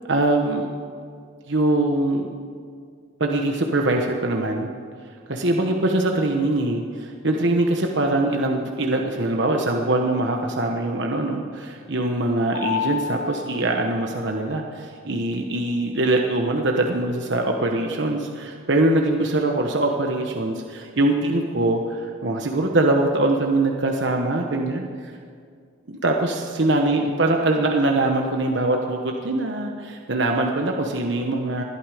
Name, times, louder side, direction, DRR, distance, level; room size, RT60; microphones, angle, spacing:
voice 1, 0.0-0.7 1.5-2.3 3.2-4.7 5.3-25.1 25.9-31.6, right 2 dB, 60° right, 2 dB, 1.1 m, -23 dB
Mallet percussion, 12.5-15.1, left 7 dB, 80° left, 4.2 m, -31 dB
20.5 x 12.5 x 5.0 m, 2.2 s
head